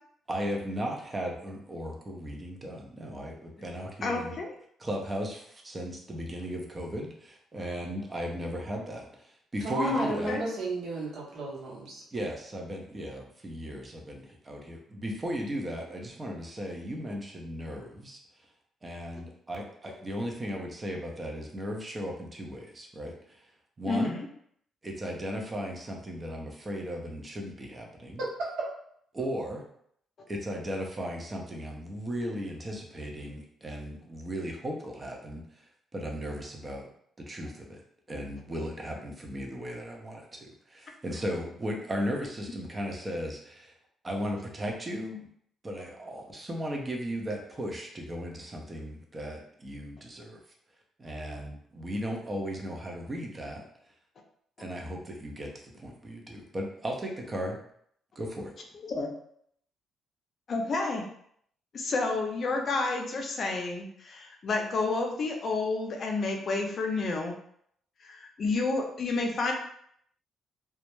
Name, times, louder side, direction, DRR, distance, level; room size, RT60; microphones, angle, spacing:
voice 1, 0.3-4.4 4.8-10.4 12.1-18.2 18.8-23.5 23.8-24.2 24.8-28.2 29.1-29.7 30.3-35.6 35.9-36.9 37.2-37.8 38.1-43.7 44.0-45.3 45.6-50.4 51.0-53.6 54.6-57.6 58.2-58.5, equal, 25° right, 1 dB, 0.6 m, -36 dB
voice 2, 4.0-4.5 9.8-10.4 23.9-24.3 58.8-59.1 60.5-61.0 61.7-67.3 68.0-69.5, left 3 dB, 50° left, 2 dB, 0.5 m, -30 dB
voice 3, 9.6-12.0 28.2-28.3, right 2 dB, 75° right, -4 dB, 0.8 m, -32 dB
2.2 x 2.0 x 3.0 m, 0.67 s
cardioid pair, 90°, 0 cm